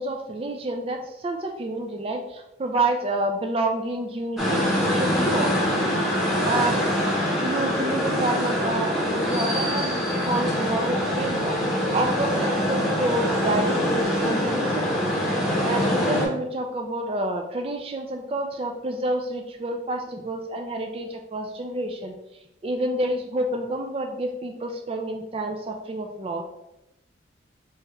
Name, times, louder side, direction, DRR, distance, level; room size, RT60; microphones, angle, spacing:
voice 1, 0.0-5.5 6.4-6.9 7.4-15.1 15.6-22.1 22.6-26.4, right 2 dB, 30° right, 3 dB, 0.3 m, -29 dB
sound 1, 4.4-16.3, equal, ahead, 0.8 m, -24 dB
3.4 x 2.9 x 3.2 m, 0.87 s
head